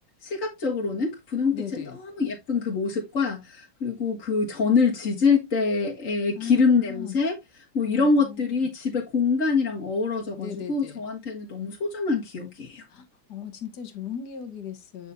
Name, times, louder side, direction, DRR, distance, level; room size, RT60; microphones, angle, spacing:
voice 1, 0.2-7.4 7.7-12.8, left 4 dB, 45° left, 1.8 m, -25 dB
voice 2, 1.5-2.0 6.4-7.1 7.9-8.4 10.4-11.0 12.9-15.1, left 8 dB, 65° left, 1.8 m, -38 dB
9.3 x 5.7 x 2.6 m
omnidirectional pair, 2.0 m